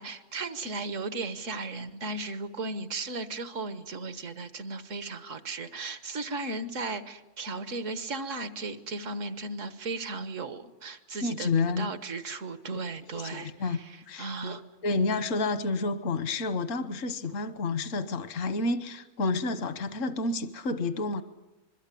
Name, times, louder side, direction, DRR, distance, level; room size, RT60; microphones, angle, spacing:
voice 1, 0.0-11.5 11.8-14.6, right 3 dB, 80° right, 10 dB, 1.7 m, -36 dB
voice 2, 11.2-11.9 13.1-13.8 14.1-21.2, left 3 dB, 80° left, 12 dB, 1.4 m, -30 dB
26.0 x 22.5 x 8.4 m, 1.0 s
omnidirectional pair, 1.3 m